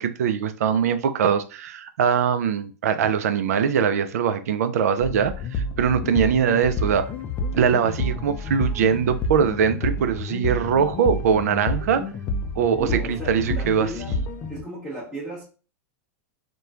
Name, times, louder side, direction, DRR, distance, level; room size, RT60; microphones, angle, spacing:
voice 1, 0.0-7.1 7.6-12.0 12.6-13.9, right 7 dB, 80° right, 0.4 m, -22 dB
sound 1, 5.0-14.6, left 2 dB, 30° left, 0.4 m, -29 dB
voice 2, 12.8-14.2 14.5-15.4, right 1 dB, ahead, 0.8 m, -34 dB
2.9 x 2.1 x 2.3 m
hypercardioid pair, 125°, 8 cm